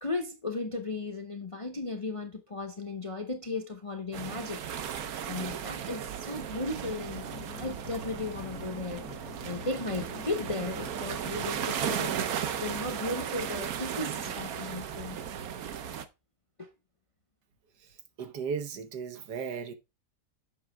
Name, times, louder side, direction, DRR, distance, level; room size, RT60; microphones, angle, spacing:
voice 1, 0.0-7.3 7.6-15.2 16.6-16.7, left 2 dB, 30° left, 0.6 m, -36 dB
sound 1, 4.1-16.1, right 8 dB, 65° right, 1.2 m, -36 dB
sound 2, 7.2-12.3, left 12 dB, 75° left, 1.1 m, -48 dB
voice 2, 17.8-19.7, right 6 dB, 80° right, 1.6 m, -36 dB
7.9 x 6.0 x 3.4 m
omnidirectional pair, 1.8 m